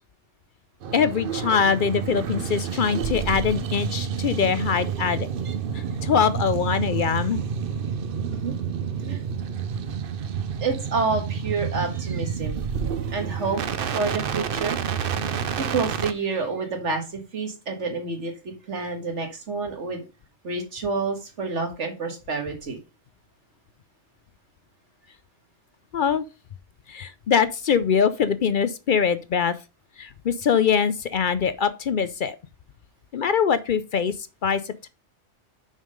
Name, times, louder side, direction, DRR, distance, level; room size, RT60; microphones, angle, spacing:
sound 1, 0.8-16.1, right 7 dB, 60° right, 0.8 m, -29 dB
voice 1, 0.9-5.3 6.0-7.4 25.9-26.2 26.9-29.6 30.0-32.4 33.1-34.1 34.4-34.9, left 7 dB, 55° left, 0.6 m, -23 dB
voice 2, 10.6-12.7 13.1-13.6 13.9-14.8 15.6-20.0 20.4-22.8, right 4 dB, 90° right, 1.9 m, -28 dB
6.3 x 5.6 x 5.2 m
omnidirectional pair, 1.2 m